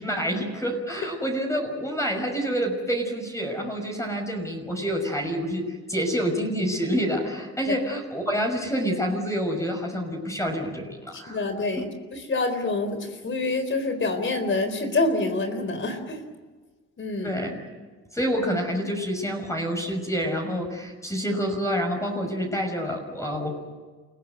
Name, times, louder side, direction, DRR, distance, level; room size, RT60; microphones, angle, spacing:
voice 1, 0.0-11.4 11.8-11.9 17.2-17.6 18.1-23.5, equal, 10° left, 2 dB, 6.1 m, -28 dB
voice 2, 11.1-16.2 17.0-17.4, left 2 dB, 40° left, 8 dB, 4.0 m, -27 dB
29.0 x 16.0 x 9.3 m, 1.4 s
cardioid pair, 90°, 30 cm